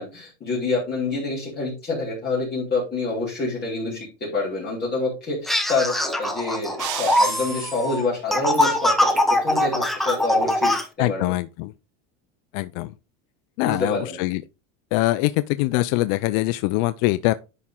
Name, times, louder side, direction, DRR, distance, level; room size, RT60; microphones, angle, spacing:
voice 1, 0.0-11.3 13.6-14.2, left 3 dB, 25° left, 3.6 m, -27 dB
sound 1, 5.5-10.8, left 1 dB, ahead, 0.7 m, -22 dB
sound 2, 6.8-8.0, right 11 dB, 50° right, 1.3 m, -34 dB
voice 2, 11.0-11.7 12.5-12.9 13.6-14.4 14.9-17.3, left 18 dB, 55° left, 0.5 m, -23 dB
10.5 x 4.3 x 3.7 m
cardioid pair, 155°, 38 cm